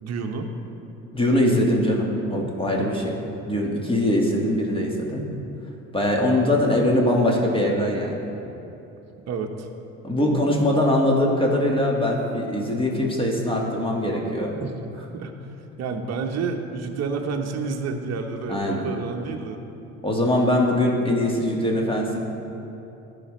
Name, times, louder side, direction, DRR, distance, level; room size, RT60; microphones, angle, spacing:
voice 1, 0.0-0.5 2.8-3.0 6.2-6.5 9.3-9.7 14.6-15.3 15.8-19.6, right 4 dB, 40° right, 4 dB, 1.0 m, -30 dB
voice 2, 1.1-3.1 3.5-5.2 5.9-8.2 10.0-14.6 18.5-18.9 20.0-22.2, left 1 dB, 15° left, -1 dB, 1.8 m, -22 dB
15.0 x 5.1 x 3.2 m, 2.9 s
hypercardioid pair, 60°, 40 cm